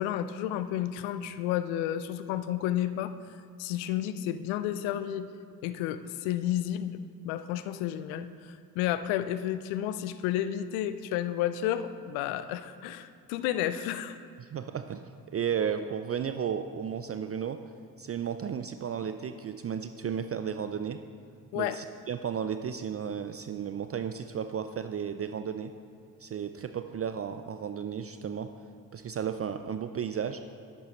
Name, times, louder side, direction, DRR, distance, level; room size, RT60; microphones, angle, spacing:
voice 1, 0.0-3.1 3.6-5.3 5.6-7.0 7.2-14.2 21.5-21.8, left 11 dB, 80° left, 13 dB, 0.5 m, -31 dB
voice 2, 14.4-17.6 18.0-21.0 21.5-25.7 26.2-28.5 28.9-30.4, right 8 dB, 35° right, 9 dB, 0.4 m, -34 dB
10.5 x 8.5 x 3.1 m, 2.2 s
hypercardioid pair, 45°, 45 cm